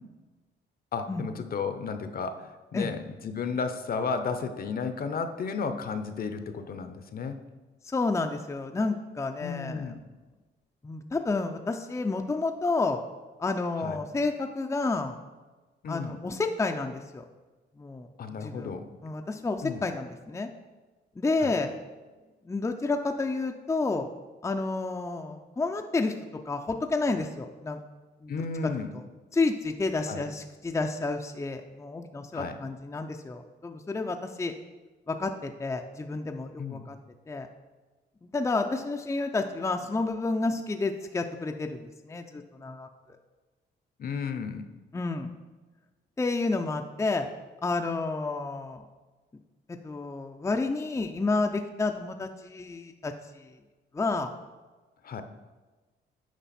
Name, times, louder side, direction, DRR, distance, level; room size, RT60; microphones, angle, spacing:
voice 1, 0.9-7.4 9.4-10.0 13.8-14.0 15.8-16.2 18.2-18.9 19.6-19.8 21.4-21.5 28.3-28.9 30.1-30.2 32.3-32.6 36.6-36.9 44.0-44.6 55.0-55.2, left 5 dB, 50° left, 9 dB, 0.7 m, -33 dB
voice 2, 7.8-9.9 10.8-13.0 13.4-15.2 15.9-17.2 17.8-18.1 18.4-18.7 19.0-20.5 21.2-21.8 22.4-24.1 24.4-27.8 28.2-28.3 29.3-34.5 35.1-37.0 37.3-37.5 38.2-42.9 44.9-45.3 46.2-47.3 47.6-48.8 49.7-53.5 53.9-54.3, left 3 dB, 15° left, 5 dB, 0.5 m, -30 dB
9.1 x 5.2 x 4.2 m, 1.3 s
cardioid pair, 90°, 20 cm